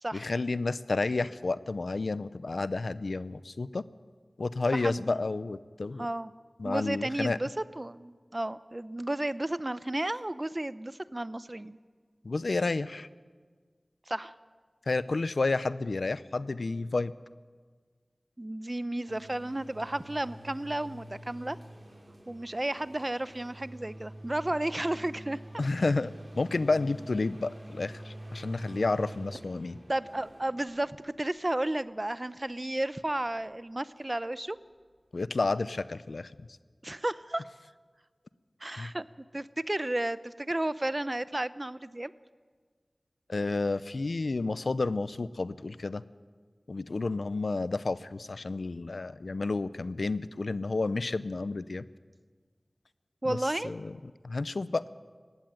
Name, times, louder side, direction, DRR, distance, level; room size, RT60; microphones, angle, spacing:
voice 1, 0.1-3.8 4.4-6.1 6.6-7.4 12.2-13.1 14.9-17.1 25.6-29.8 35.1-36.3 38.8-38.9 43.3-46.0 46.7-51.8 53.3-53.4 53.6-53.9 54.2-54.8, left 3 dB, 90° left, 16 dB, 0.6 m, -30 dB
voice 2, 4.7-5.2 6.0-6.3 6.6-11.8 14.1-14.3 18.4-21.6 22.3-25.4 29.9-34.6 36.8-37.4 38.6-39.1 39.3-42.1 53.2-53.7, right 1 dB, 35° right, 15 dB, 0.7 m, -33 dB
sound 1, 19.1-31.3 33.0-33.1, right 1 dB, 65° right, 6.3 m, -46 dB
19.0 x 15.5 x 9.0 m, 1.5 s
wide cardioid pair, 40°, 0 cm